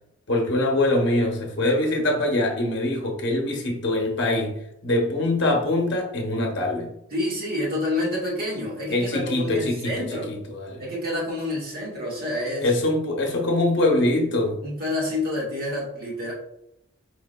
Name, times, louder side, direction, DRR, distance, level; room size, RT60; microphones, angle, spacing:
voice 1, 0.3-6.9 8.9-10.8 12.6-14.6, left 1 dB, 55° left, 1 dB, 0.8 m, -23 dB
voice 2, 7.1-10.3 10.8-12.7 14.6-16.3, left 1 dB, 45° right, -4 dB, 1.6 m, -28 dB
4.6 x 3.8 x 2.2 m, 0.78 s
head